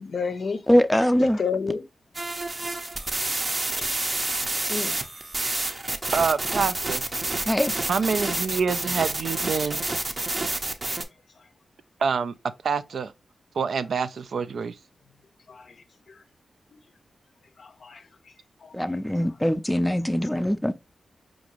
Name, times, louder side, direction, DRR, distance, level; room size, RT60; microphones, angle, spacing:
voice 1, 0.0-0.6 1.2-1.9 4.7-5.0 9.7-9.8 10.3-10.4 15.5-15.7 16.1-16.2 17.6-18.0 18.6-19.0 20.3-20.4, left 5 dB, 65° left, 0.5 m, -31 dB
voice 2, 0.7-1.4 7.5-7.8 18.7-20.7, equal, 5° left, 0.4 m, -22 dB
sound 1, 2.1-11.0, right 2 dB, 35° right, 0.6 m, -28 dB
voice 3, 6.1-7.1 7.9-9.8 12.0-12.3 12.6-13.1 13.6-14.7, right 5 dB, 75° right, 0.3 m, -26 dB
4.7 x 2.6 x 2.9 m
cardioid pair, 75°, 0 cm